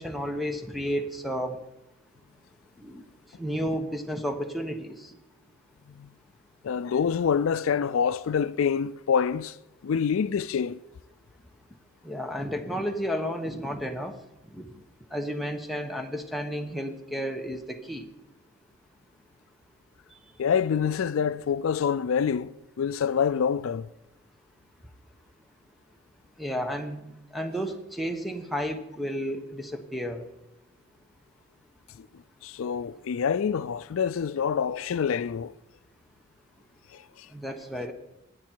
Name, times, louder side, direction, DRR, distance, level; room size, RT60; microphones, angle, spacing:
voice 1, 0.0-1.6 2.8-3.0 3.4-5.1 12.0-14.2 14.5-14.6 15.1-18.0 26.4-30.3 37.3-37.9, equal, ahead, 1.0 m, -32 dB
voice 2, 6.6-9.6 9.8-10.8 20.4-23.9 32.0-32.1 32.4-35.5 36.9-37.3, left 7 dB, 70° left, 0.4 m, -26 dB
19.0 x 8.1 x 4.5 m
head